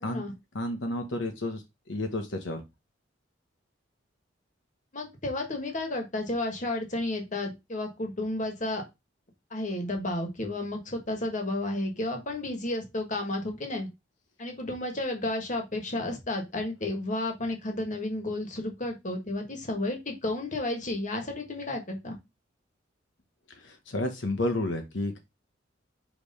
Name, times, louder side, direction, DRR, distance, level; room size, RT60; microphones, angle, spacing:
voice 1, 0.0-0.3 4.9-8.8 9.5-13.9 14.4-22.1, left 2 dB, 40° left, 3 dB, 1.5 m, -32 dB
voice 2, 0.5-2.6 23.5-25.2, left 1 dB, 75° left, 5 dB, 1.0 m, -31 dB
5.2 x 3.4 x 5.3 m, 0.23 s
head